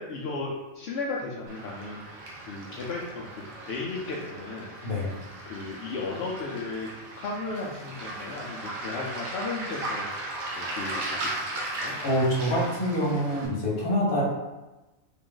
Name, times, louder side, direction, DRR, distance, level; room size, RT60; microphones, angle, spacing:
voice 1, 0.0-2.0 2.4-4.7 5.4-6.9 7.2-12.0, left 3 dB, 60° left, -4 dB, 0.7 m, -35 dB
Waves surf, 1.5-13.5, right 2 dB, 80° right, 1.2 m, -37 dB
voice 2, 4.8-5.1 12.0-14.2, equal, 45° left, -4 dB, 1.1 m, -25 dB
3.7 x 2.5 x 3.8 m, 1.1 s
omnidirectional pair, 1.4 m